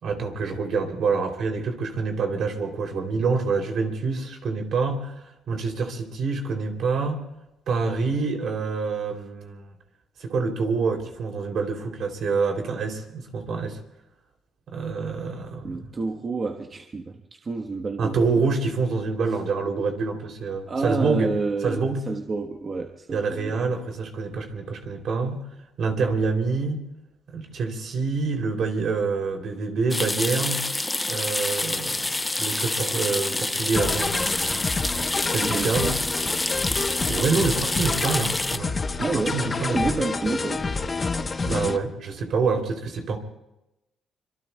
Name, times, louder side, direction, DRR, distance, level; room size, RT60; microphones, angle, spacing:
voice 1, 0.0-5.1 5.5-7.2 7.7-9.7 10.2-13.8 14.7-15.9 18.0-21.3 21.6-22.1 23.1-25.5 25.8-26.8 27.3-30.7 31.1-34.7 35.3-36.0 37.1-40.0 41.4-43.2, right 4 dB, 65° right, 3 dB, 3.0 m, -26 dB
voice 2, 15.6-18.1 20.7-23.6 35.4-36.0 39.0-40.8, right 3 dB, 35° right, 3 dB, 1.2 m, -29 dB
sound 1, 29.9-38.6, left 2 dB, 15° left, 0.6 m, -27 dB
sound 2, 33.7-41.8, left 4 dB, 35° left, 1.0 m, -28 dB
25.5 x 24.5 x 2.3 m, 0.91 s
cardioid pair, 90°, 0 cm